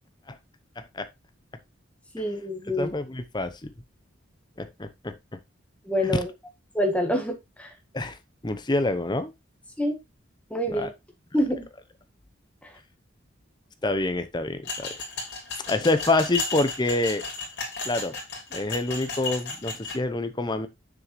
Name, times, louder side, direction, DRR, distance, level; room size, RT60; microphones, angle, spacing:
voice 1, 0.8-1.1 2.7-3.7 4.6-5.4 6.0-6.1 7.9-8.2 8.4-9.3 10.7-10.9 13.8-14.9 15.5-17.2 17.8-18.2 18.5-20.7, left 2 dB, 20° left, 0.7 m, -27 dB
voice 2, 2.1-2.9 5.8-6.3 6.7-7.7 9.8-10.0 10.5-10.9 11.3-11.7, equal, 5° left, 1.5 m, -26 dB
sound 1, 14.6-20.0, left 4 dB, 55° left, 3.2 m, -34 dB
7.4 x 6.4 x 3.1 m
head